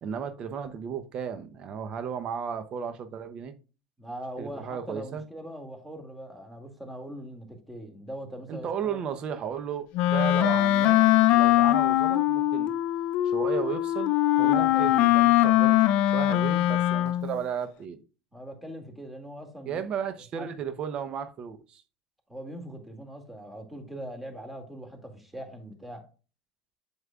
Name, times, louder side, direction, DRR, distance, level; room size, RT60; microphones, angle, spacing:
voice 1, 0.0-3.5 4.4-5.2 8.5-12.7 13.2-15.8 16.1-18.0 19.7-21.8, right 7 dB, 45° right, 0.9 m, -34 dB
voice 2, 4.0-9.0 14.4-14.9 18.3-19.8 20.4-20.5 22.3-26.0, right 1 dB, 5° right, 2.3 m, -41 dB
Wind instrument woodwind instrument, 9.9-17.4, left 14 dB, 60° left, 0.4 m, -22 dB
7.7 x 7.2 x 2.4 m
hypercardioid pair, 80°, 2 cm